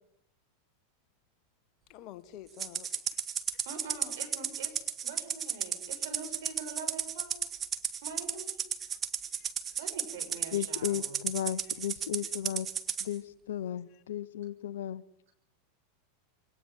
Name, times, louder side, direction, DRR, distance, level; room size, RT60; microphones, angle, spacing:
voice 1, 1.9-3.0 3.5-3.6 9.3-9.9 13.9-14.0, left 12 dB, 50° left, 1.6 m, -50 dB
Rattle (instrument), 2.6-13.1, right 8 dB, 30° right, 1.7 m, -34 dB
voice 2, 3.6-7.4 8.0-8.6 9.8-11.2, right 4 dB, 65° right, 6.3 m, -44 dB
voice 3, 10.5-12.7 13.0-15.0, left 11 dB, 70° left, 1.0 m, -35 dB
23.0 x 18.0 x 9.6 m
hypercardioid pair, 90°, 0 cm